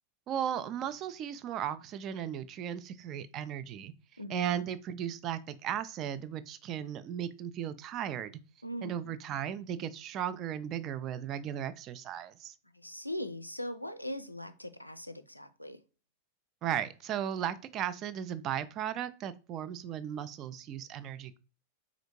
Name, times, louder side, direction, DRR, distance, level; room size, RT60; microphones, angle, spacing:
voice 1, 0.3-3.9 4.3-8.3 8.8-12.5 16.6-21.4, right 9 dB, 35° right, 0.3 m, -36 dB
voice 2, 4.2-4.5 8.6-9.0 12.7-15.8, left 1 dB, 90° left, 0.3 m, -40 dB
4.1 x 2.5 x 3.0 m
figure-of-eight pair, 90°, 0 cm